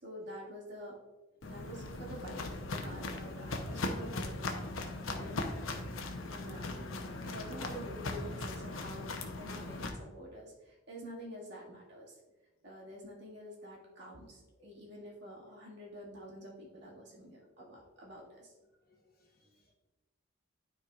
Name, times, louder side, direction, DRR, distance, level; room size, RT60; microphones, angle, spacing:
voice 1, 0.0-1.0 1.4-6.8 7.2-12.2 12.6-18.6, equal, 55° right, -4 dB, 2.1 m, -48 dB
Walk footsteps, 1.4-9.9, left 2 dB, 75° left, 0.9 m, -39 dB
voice 2, 18.9-19.7, equal, 45° left, -1 dB, 1.3 m, -66 dB
12.5 x 4.6 x 2.5 m, 1.2 s
head